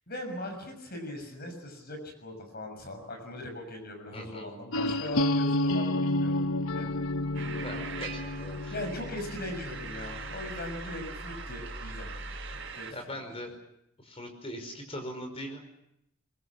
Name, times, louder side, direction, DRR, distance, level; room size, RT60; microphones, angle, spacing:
voice 1, 0.1-6.4 6.7-7.8 8.7-13.2, left 1 dB, 45° left, 4 dB, 6.5 m, -40 dB
voice 2, 4.1-4.5 7.6-8.7 12.9-13.5 14.0-15.6, equal, 25° left, 5 dB, 5.3 m, -40 dB
sound 1, 4.7-10.5, left 1 dB, 70° left, 0.9 m, -30 dB
sound 2, 5.1-12.6, equal, ahead, 6.0 m, -47 dB
sound 3, 7.3-12.9, right 6 dB, 60° right, 4.8 m, -42 dB
24.0 x 22.5 x 8.5 m, 0.82 s
head